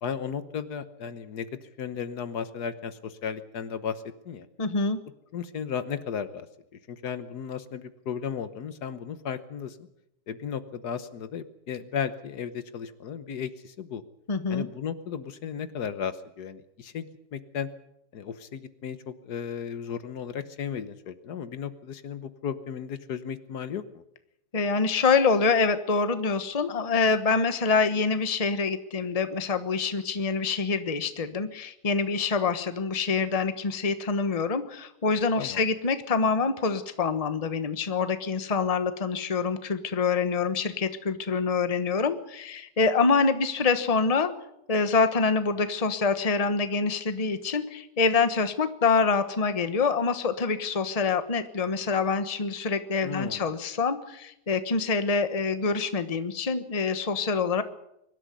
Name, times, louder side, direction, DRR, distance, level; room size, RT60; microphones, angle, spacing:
voice 1, 0.0-4.5 5.3-6.5 6.9-9.9 10.3-14.0 14.5-17.7 18.1-23.8 35.4-35.6 53.0-53.6, left 7 dB, 70° left, 12 dB, 1.6 m, -35 dB
voice 2, 4.6-5.0 14.3-14.7 24.5-44.3 44.7-57.6, left 4 dB, 25° left, 11 dB, 1.1 m, -26 dB
23.5 x 12.5 x 9.3 m, 0.81 s
omnidirectional pair, 1.8 m